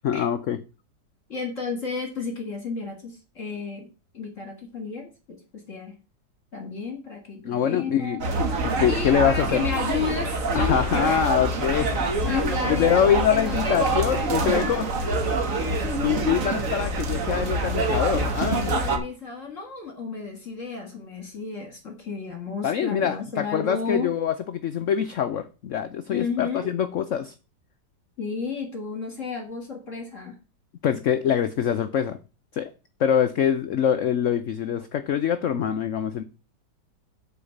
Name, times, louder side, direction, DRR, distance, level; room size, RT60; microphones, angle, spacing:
voice 1, 0.0-0.6 7.4-8.2 8.6-9.6 10.5-11.9 12.3-14.9 16.0-18.8 22.6-27.3 30.8-32.2 32.5-32.7 33.0-36.2, left 8 dB, 65° left, 10 dB, 0.8 m, -24 dB
voice 2, 1.3-3.9 4.1-5.9 6.5-8.2 8.9-11.3 12.3-15.2 16.5-16.6 18.5-24.1 26.1-26.7 28.2-30.4, left 4 dB, 45° left, 3 dB, 2.1 m, -33 dB
sound 1, 8.2-19.0, right 2 dB, 50° right, 1.7 m, -26 dB
8.4 x 4.7 x 7.0 m, 0.32 s
omnidirectional pair, 1.9 m